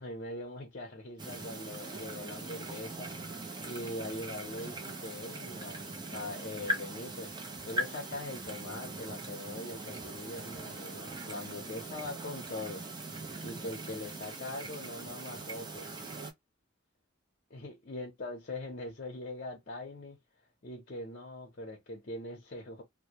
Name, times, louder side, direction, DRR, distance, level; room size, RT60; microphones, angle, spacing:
voice 1, 0.0-3.1 3.6-7.3 7.6-12.8 13.4-15.9 17.5-20.2 20.6-22.8, left 2 dB, 50° left, 0.7 m, -42 dB
sound 1, 1.2-16.3, right 2 dB, 25° right, 0.6 m, -41 dB
2.2 x 2.1 x 2.8 m
head